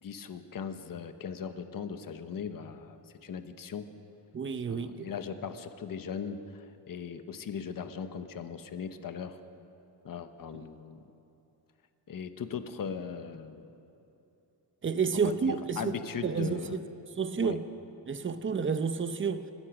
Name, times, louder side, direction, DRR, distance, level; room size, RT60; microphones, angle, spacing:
voice 1, 0.0-3.9 4.7-9.4 10.0-11.0 12.1-13.7 15.1-16.8 17.3-17.6, left 6 dB, 50° left, 1.1 m, -39 dB
voice 2, 4.3-5.1 14.8-16.8 17.2-17.6 18.1-19.4, right 5 dB, 30° right, 0.7 m, -30 dB
29.0 x 15.5 x 6.1 m
wide cardioid pair, 175°, 43 cm